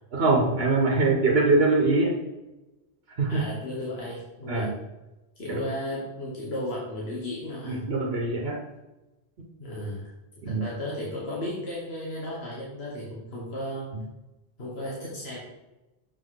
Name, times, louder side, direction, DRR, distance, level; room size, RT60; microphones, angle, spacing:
voice 1, 0.1-2.2 3.2-3.4 4.5-4.7 5.5-5.6 7.6-8.6 10.4-10.6, right 3 dB, 75° right, 0 dB, 1.2 m, -23 dB
voice 2, 3.3-4.7 5.4-7.8 9.6-10.0 10.5-13.9 14.6-15.4, left 1 dB, 80° left, -5 dB, 1.8 m, -34 dB
6.9 x 5.5 x 3.8 m, 1.0 s
omnidirectional pair, 1.0 m